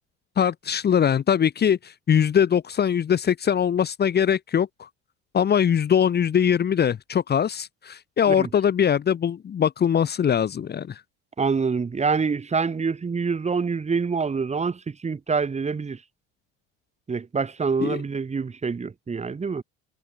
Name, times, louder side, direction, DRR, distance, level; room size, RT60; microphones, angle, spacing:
voice 1, 0.4-4.9 5.3-11.0 17.8-18.0, left 8 dB, 35° left, 2.2 m, -22 dB
voice 2, 11.4-16.0 17.1-19.6, right 5 dB, 25° right, 5.5 m, -26 dB
supercardioid pair, 100°, 29 cm